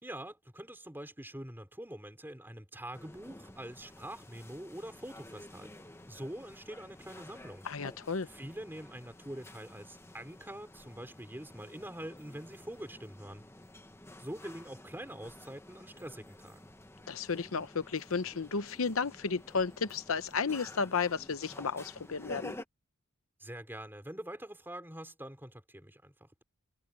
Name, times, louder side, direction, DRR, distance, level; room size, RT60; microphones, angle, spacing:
voice 1, 0.0-7.6 8.3-13.4 14.2-16.7 23.4-26.4, right 1 dB, 10° right, 4.3 m, -45 dB
sound 1, 2.9-22.6, left 1 dB, 10° left, 1.3 m, -51 dB
voice 2, 7.6-8.3 17.1-22.5, left 5 dB, 70° left, 0.8 m, -33 dB
head